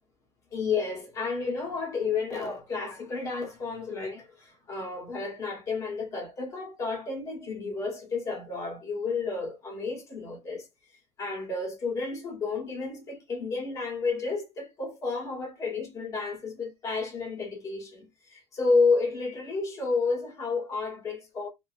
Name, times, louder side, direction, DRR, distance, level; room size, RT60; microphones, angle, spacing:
voice 1, 0.5-10.7 11.2-21.5, left 4 dB, 30° left, 1.3 m, -31 dB
2.8 x 2.8 x 2.4 m
cardioid pair, 170°, 11 cm